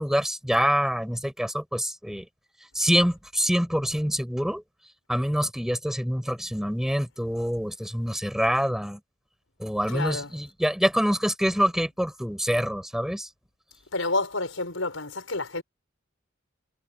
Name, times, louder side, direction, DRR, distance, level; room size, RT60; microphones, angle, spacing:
voice 1, 0.0-2.3 2.8-4.6 5.1-9.0 9.6-13.3, equal, ahead, 5.3 m, -26 dB
voice 2, 9.9-10.3 13.9-15.6, left 2 dB, 80° left, 5.6 m, -29 dB
head